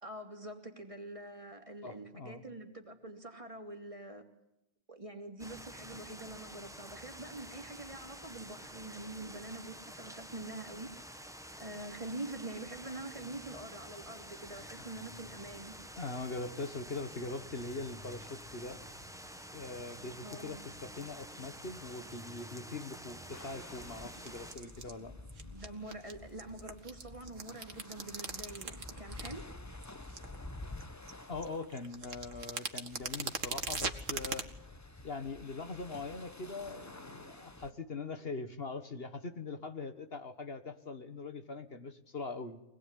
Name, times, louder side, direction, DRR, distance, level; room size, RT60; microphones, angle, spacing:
voice 1, 0.0-4.3 4.9-10.9 11.6-15.8 20.2-20.6 25.1-29.6, right 2 dB, 25° right, 4 dB, 3.0 m, -45 dB
voice 2, 1.8-2.4 14.5-14.8 15.9-18.8 19.5-25.1 31.3-34.5 35.0-42.6, left 3 dB, 50° left, 8 dB, 1.7 m, -42 dB
sound 1, 5.4-24.6, equal, 5° right, 1.4 m, -49 dB
sound 2, 23.3-37.7, left 2 dB, 15° left, 1.0 m, -50 dB
sound 3, 24.1-24.9 25.3-26.1 26.4-29.4 29.7-30.4 30.8-30.9 31.1-34.4, right 4 dB, 90° right, 2.2 m, -40 dB
25.0 x 19.5 x 9.9 m, 0.87 s
omnidirectional pair, 1.3 m